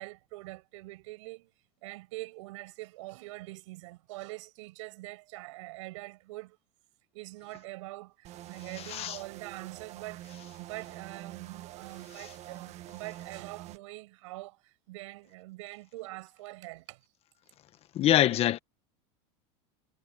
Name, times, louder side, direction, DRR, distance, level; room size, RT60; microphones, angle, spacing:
voice 1, 0.0-1.5 1.8-6.6 7.1-17.0, right 21 dB, 75° right, 6.7 m, -44 dB
sound 1, 8.2-13.8, right 14 dB, 45° right, 1.7 m, -46 dB
voice 2, 17.9-18.6, left 12 dB, 40° left, 1.4 m, -24 dB
supercardioid pair, 125°, 16 cm